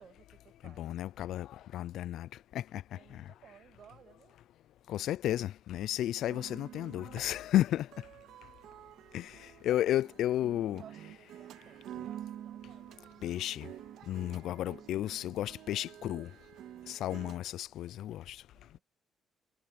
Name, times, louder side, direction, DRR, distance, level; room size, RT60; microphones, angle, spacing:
voice 1, 0.0-0.9 2.9-4.4 9.5-10.0 10.6-13.4 14.2-15.2 18.5-18.8, right 8 dB, 60° right, 6.5 m, -59 dB
voice 2, 0.6-3.3 4.9-7.9 9.1-10.8 13.2-13.7 14.1-16.3 16.9-18.4, left 13 dB, 80° left, 0.4 m, -33 dB
sound 1, 6.3-17.4, right 11 dB, 80° right, 2.3 m, -49 dB
cardioid pair, 90°, 0 cm